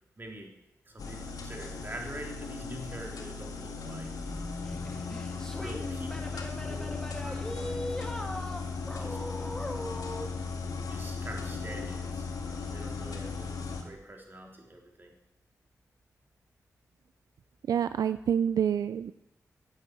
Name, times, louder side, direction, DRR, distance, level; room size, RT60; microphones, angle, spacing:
voice 1, 0.2-0.5 0.9-4.1 5.5-6.3 6.7-7.8 9.0-9.2 10.9-13.6 13.8-15.1, right 1 dB, 35° right, 2 dB, 3.4 m, -45 dB
sound 1, 1.0-13.8, left 4 dB, 80° left, 2.0 m, -37 dB
sound 2, 4.6-10.3, left 1 dB, 10° left, 2.3 m, -39 dB
voice 2, 17.7-19.1, right 8 dB, 80° right, 13 dB, 0.4 m, -27 dB
12.0 x 8.5 x 7.7 m, 0.85 s
cardioid pair, 55°, 6 cm